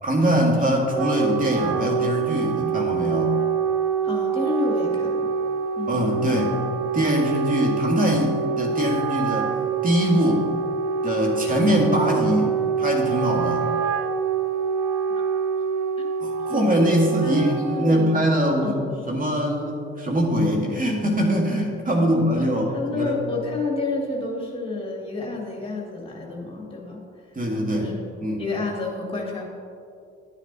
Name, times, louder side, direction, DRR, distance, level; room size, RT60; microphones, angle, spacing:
voice 1, 0.0-3.4 5.9-6.6 6.9-9.5 9.8-10.5 11.0-12.5 12.8-13.7 16.2-18.8 19.1-23.1 27.4-27.9 28.2-28.4, equal, 25° right, 0 dB, 2.1 m, -22 dB
Wind instrument woodwind instrument, 0.7-18.2, right 6 dB, 90° right, 0.5 m, -25 dB
voice 2, 4.0-5.3 5.8-6.1 15.1-15.3 16.0-16.1 16.5-16.8 17.2-18.1 18.6-18.9 22.0-22.1 22.4-27.0 27.3-27.4 27.7-28.0 28.4-29.4, left 3 dB, 15° left, -2 dB, 2.5 m, -30 dB
11.5 x 9.9 x 2.9 m, 2.5 s
figure-of-eight pair, 45°, 34 cm